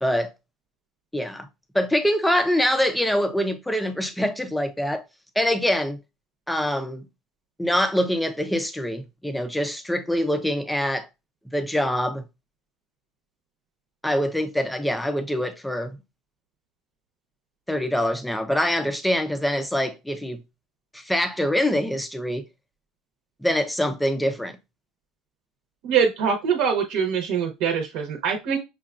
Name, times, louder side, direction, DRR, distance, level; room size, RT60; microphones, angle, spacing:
voice 1, 0.0-0.3 1.1-1.5 1.7-5.0 5.4-6.0 6.5-7.1 7.6-11.1 11.5-12.2 14.0-16.0 17.7-20.4 20.9-22.4 23.4-24.6, equal, 5° left, 0.4 m, -24 dB
voice 2, 25.8-28.6, right 6 dB, 70° right, 0.8 m, -23 dB
5.6 x 2.3 x 2.4 m
cardioid pair, 145°, 0 cm